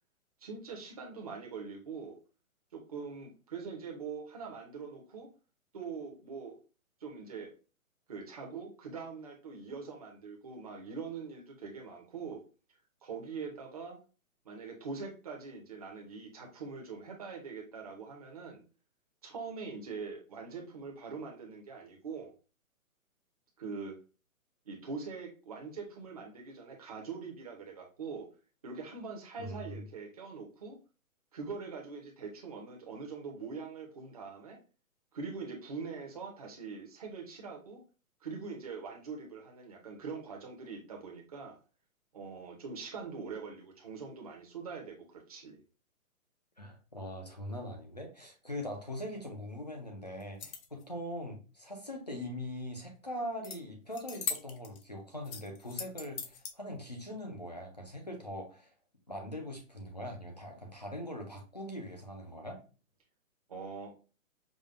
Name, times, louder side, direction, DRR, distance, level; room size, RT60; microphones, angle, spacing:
voice 1, 0.4-2.2 2.7-5.3 5.7-6.6 7.0-7.5 8.1-12.4 13.0-14.0 14.4-18.6 19.2-22.3 23.6-24.0 24.7-28.3 28.6-30.8 31.3-34.6 35.1-37.8 38.2-41.6 42.1-45.6 63.5-63.9, right 5 dB, 25° right, 0 dB, 0.6 m, -43 dB
voice 2, 29.4-29.8 46.6-58.7 59.1-62.6, left 1 dB, 30° left, 3 dB, 0.4 m, -41 dB
sound 1, 50.2-50.8 53.4-53.6 53.9-54.8 55.2-56.5, left 6 dB, 75° left, 0.8 m, -39 dB
5.1 x 2.2 x 2.4 m, 0.33 s
hypercardioid pair, 165°, 43 cm